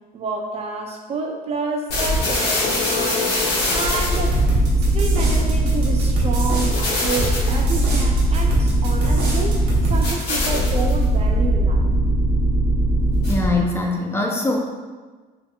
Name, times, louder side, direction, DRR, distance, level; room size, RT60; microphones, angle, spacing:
voice 1, 0.1-3.3 3.7-4.4 4.9-11.8, right 4 dB, 40° right, 2 dB, 0.5 m, -29 dB
sound 1, 1.9-13.7, right 1 dB, 80° left, 1.5 m, -20 dB
sound 2, 3.9-10.3, right 2 dB, 85° right, 1.2 m, -27 dB
voice 2, 13.3-14.6, left 2 dB, 15° left, 0 dB, 0.5 m, -22 dB
4.7 x 3.4 x 2.2 m, 1.3 s
cardioid pair, 110°, 17 cm